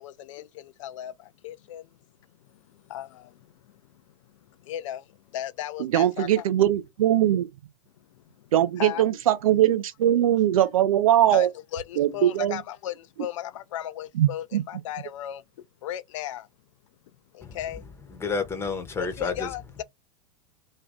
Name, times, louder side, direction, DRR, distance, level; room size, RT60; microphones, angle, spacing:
voice 1, 0.0-1.9 2.7-3.8 4.6-6.4 8.1-8.2 8.8-9.1 11.3-12.9 13.2-15.4 15.8-16.5 17.3-17.8 19.2-19.8, left 12 dB, 50° left, 0.4 m, -36 dB
voice 2, 5.8-7.5 8.5-11.5 12.0-12.6 14.1-14.6, right 12 dB, 60° right, 0.6 m, -21 dB
voice 3, 17.4-19.5, left 4 dB, 10° left, 0.8 m, -31 dB
2.7 x 2.3 x 3.4 m
figure-of-eight pair, 95°, 20 cm